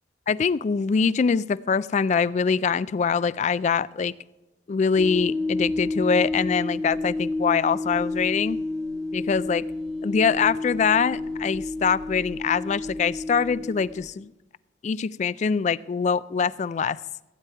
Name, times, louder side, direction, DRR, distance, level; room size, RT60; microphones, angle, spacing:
voice 1, 0.3-4.1 4.7-8.6 9.1-9.6 10.0-14.3 14.8-17.0, left 6 dB, 40° left, 19 dB, 0.3 m, -24 dB
sound 1, 5.0-14.1, left 2 dB, 5° left, 0.9 m, -30 dB
15.5 x 9.2 x 4.6 m, 1.0 s
head